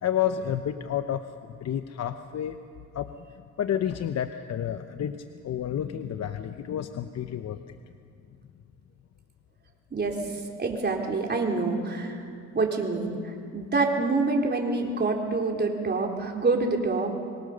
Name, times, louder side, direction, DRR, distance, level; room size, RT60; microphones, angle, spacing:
voice 1, 0.0-2.6 2.9-3.1 3.6-7.8, left 9 dB, 60° left, 9 dB, 0.9 m, -30 dB
voice 2, 9.9-10.2 10.6-12.2 12.5-17.1, right 3 dB, 35° right, 1 dB, 3.9 m, -26 dB
25.0 x 23.5 x 6.7 m, 2.3 s
cardioid pair, 90°, 30 cm